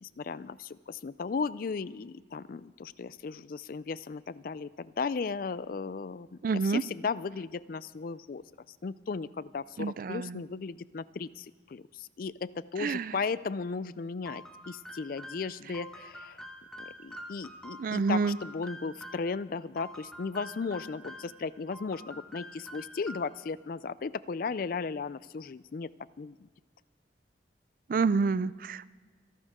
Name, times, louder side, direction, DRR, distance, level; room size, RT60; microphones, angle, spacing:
voice 1, 0.0-8.4 8.8-16.4 16.8-25.9 26.2-26.5, left 4 dB, 50° left, 18 dB, 0.4 m, -36 dB
voice 2, 6.4-6.8 9.8-10.4 12.8-13.2 17.8-18.4 27.9-28.9, right 4 dB, 50° right, 18 dB, 0.3 m, -28 dB
sound 1, 14.3-19.3 19.8-21.4 21.7-23.4, equal, 5° left, 1.2 m, -46 dB
26.5 x 12.0 x 3.6 m, 1.5 s
head